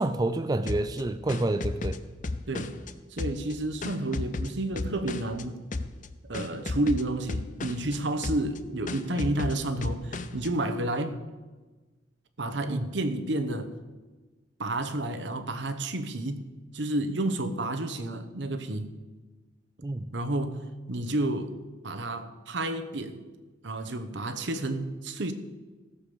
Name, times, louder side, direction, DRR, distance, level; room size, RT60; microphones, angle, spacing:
voice 1, 0.0-2.0 12.7-12.9 19.8-20.1, right 2 dB, 20° right, 10 dB, 0.4 m, -28 dB
sound 1, 0.7-2.9 3.2-5.4 5.7-6.1 6.3-8.0 8.2-8.6 8.9-10.5, left 3 dB, 40° left, 0.7 m, -34 dB
voice 2, 3.1-5.6 6.3-11.2 12.4-13.7 14.6-16.5 16.7-18.9 20.1-21.6 21.8-23.2 23.6-25.3, right 1 dB, 70° right, 8 dB, 1.0 m, -30 dB
15.5 x 7.1 x 6.9 m, 1.3 s
head